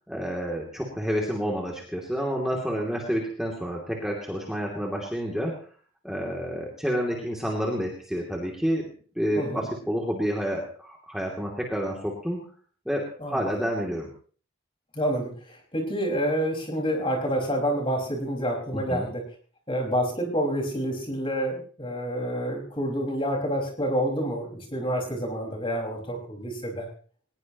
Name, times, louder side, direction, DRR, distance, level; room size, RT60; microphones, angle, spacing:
voice 1, 0.1-5.6 6.0-8.9 9.2-12.4 12.9-14.1 18.7-19.1, equal, ahead, -2 dB, 2.8 m, -29 dB
voice 2, 14.9-19.2 19.7-26.9, equal, 25° left, 1 dB, 5.3 m, -28 dB
21.5 x 20.5 x 3.0 m, 0.43 s
head